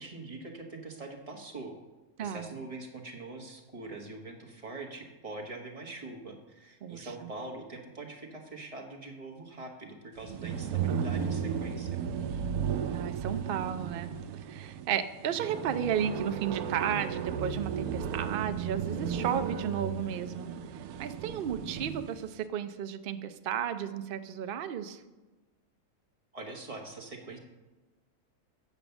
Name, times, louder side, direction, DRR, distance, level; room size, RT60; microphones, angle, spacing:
voice 1, 0.0-1.8 2.2-12.0 21.5-21.9 26.3-27.4, right 2 dB, 25° right, 1 dB, 1.2 m, -43 dB
voice 2, 2.2-2.5 6.8-7.3 12.6-14.1 14.5-20.5 21.0-25.0, right 8 dB, 55° right, 9 dB, 0.6 m, -33 dB
sound 1, 10.2-22.2, right 7 dB, 90° right, 1.1 m, -34 dB
8.3 x 5.1 x 6.9 m, 1.2 s
omnidirectional pair, 1.5 m